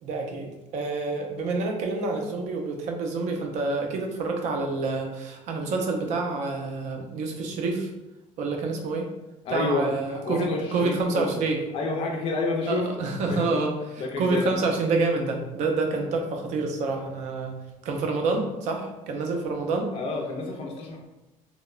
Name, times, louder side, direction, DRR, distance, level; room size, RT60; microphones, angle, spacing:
voice 1, 0.0-7.9 8.4-9.1 9.5-11.6 12.7-17.6 17.8-19.9, right 3 dB, 60° right, 3 dB, 0.4 m, -28 dB
voice 2, 9.5-11.4 11.7-12.9 13.3-13.6 14.0-14.6 18.3-18.4 19.9-21.1, left 3 dB, 40° left, 0 dB, 0.4 m, -29 dB
2.8 x 2.1 x 2.3 m, 0.99 s
cardioid pair, 170°, 14 cm